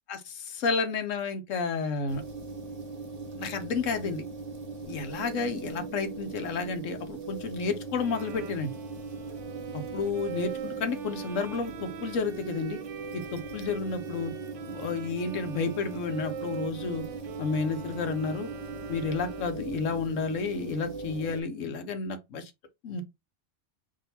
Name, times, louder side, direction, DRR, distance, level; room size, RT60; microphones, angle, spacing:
voice 1, 0.1-2.2 3.4-4.2 4.8-8.7 9.7-12.8 13.1-14.3 14.7-17.0 17.4-18.5 18.9-22.5 22.8-23.0, left 4 dB, 80° left, 1.2 m, -31 dB
sound 1, 2.1-21.4, right 3 dB, 40° right, 0.7 m, -40 dB
Bowed string instrument, 8.0-19.8, right 9 dB, 70° right, 1.0 m, -43 dB
3.8 x 2.7 x 4.2 m
omnidirectional pair, 1.3 m